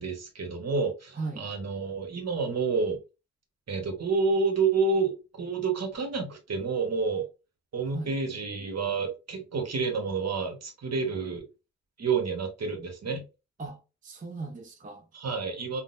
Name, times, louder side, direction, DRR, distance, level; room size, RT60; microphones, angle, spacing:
voice 1, 0.0-3.0 3.7-7.3 7.7-11.4 12.0-13.2 15.1-15.8, right 4 dB, 60° right, 1.0 m, -29 dB
voice 2, 1.2-1.5 7.9-8.1 13.6-15.0, right 3 dB, 25° right, 0.6 m, -38 dB
3.7 x 2.0 x 2.4 m
wide cardioid pair, 85°, 30 cm